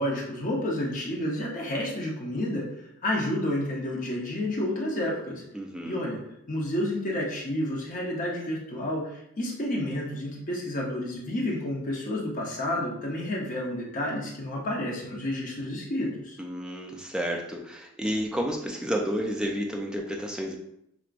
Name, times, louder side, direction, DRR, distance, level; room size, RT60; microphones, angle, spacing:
voice 1, 0.0-2.7 3.0-5.4 5.8-6.2 6.5-16.4, left 1 dB, 35° left, -3 dB, 0.8 m, -30 dB
voice 2, 5.5-6.0 16.4-20.6, equal, 5° right, 0 dB, 0.4 m, -31 dB
5.9 x 2.1 x 2.5 m, 0.77 s
head